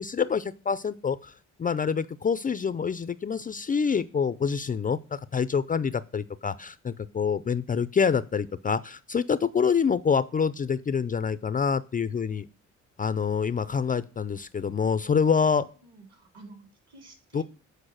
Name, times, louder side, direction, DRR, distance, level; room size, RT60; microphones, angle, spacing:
voice 1, 0.0-1.3 1.6-12.5 13.0-15.6 17.3-17.4, left 6 dB, 30° left, 15 dB, 0.4 m, -26 dB
voice 2, 15.2-17.4, right 2 dB, 55° right, 4 dB, 3.4 m, -51 dB
8.7 x 4.7 x 6.3 m, 0.36 s
cardioid pair, 90°, 30 cm